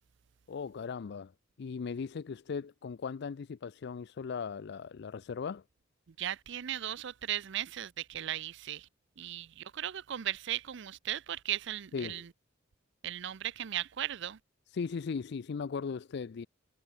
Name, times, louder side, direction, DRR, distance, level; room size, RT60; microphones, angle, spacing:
voice 1, 0.5-1.3 1.6-5.6 11.9-12.3 14.7-16.5, left 5 dB, 60° left, 0.4 m, -38 dB
voice 2, 6.2-8.9 9.2-12.2 13.0-14.4, right 12 dB, 65° right, 0.5 m, -37 dB
head